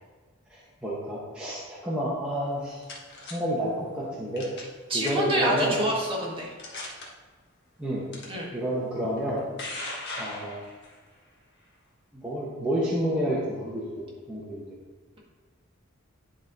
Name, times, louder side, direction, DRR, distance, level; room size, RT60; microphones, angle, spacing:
voice 1, 0.5-2.8 3.3-4.5 4.9-5.8 7.8-8.0 8.5-9.4 10.2-10.6 12.1-13.8 14.3-14.6, equal, 5° right, -8 dB, 1.0 m, -29 dB
sound 1, 2.4-3.3 4.4-4.7 5.0-5.4 6.0-6.1 6.6-7.0 8.1-8.2 9.2-10.9, left 2 dB, 55° left, 1.4 m, -38 dB
voice 2, 4.9-6.5 8.3-8.5, right 1 dB, 25° right, -4 dB, 1.7 m, -27 dB
10.0 x 3.8 x 3.9 m, 1.4 s
head